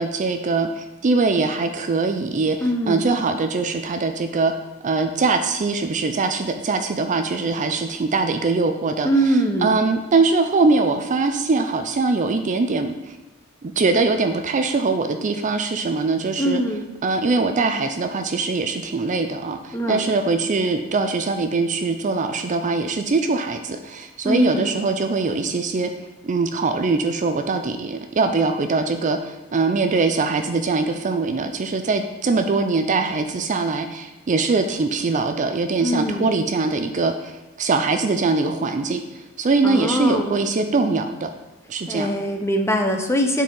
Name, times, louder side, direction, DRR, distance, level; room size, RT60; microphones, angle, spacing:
voice 1, 0.0-2.6 2.9-4.5 4.8-13.2 13.6-16.6 17.0-25.9 26.2-39.0 39.4-41.3 41.7-42.1, right 3 dB, 35° right, 7 dB, 0.4 m, -22 dB
voice 2, 2.6-3.0 9.0-9.8 16.4-16.8 19.7-20.0 20.3-20.4 24.2-24.8 35.8-36.3 39.6-40.3 41.9-43.4, equal, 10° left, 3 dB, 0.7 m, -22 dB
10.0 x 4.3 x 3.8 m, 1.0 s
head